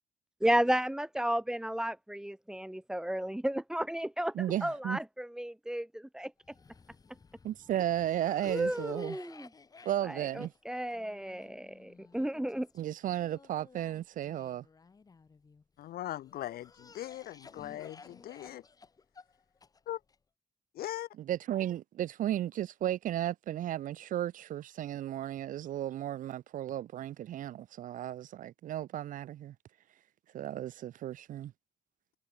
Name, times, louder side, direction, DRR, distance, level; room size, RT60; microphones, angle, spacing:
voice 1, 0.4-4.3 4.6-6.3 8.5-9.5 10.0-12.7, right 1 dB, 5° right, 1.2 m, -33 dB
voice 2, 4.3-5.0 7.4-9.2 9.8-10.5 12.8-14.6 21.3-29.5 30.3-31.5, right 12 dB, 60° right, 0.8 m, -34 dB
Cough, 6.4-15.6 16.2-20.2, left 4 dB, 25° left, 3.9 m, -55 dB
voice 3, 15.8-18.6 19.9-20.0 20.7-21.1, left 13 dB, 75° left, 2.3 m, -40 dB
cardioid pair, 160°, 16 cm